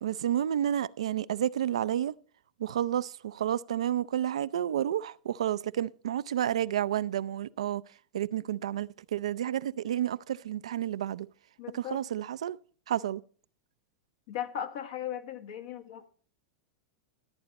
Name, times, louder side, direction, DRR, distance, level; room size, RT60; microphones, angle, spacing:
voice 1, 0.0-2.1 2.6-7.8 8.1-11.3 11.7-12.6 12.9-13.2, right 11 dB, 85° right, 0.4 m, -30 dB
voice 2, 11.6-12.0 14.3-16.1, left 10 dB, 70° left, 1.5 m, -37 dB
14.0 x 8.7 x 4.1 m
hypercardioid pair, 115°, 3 cm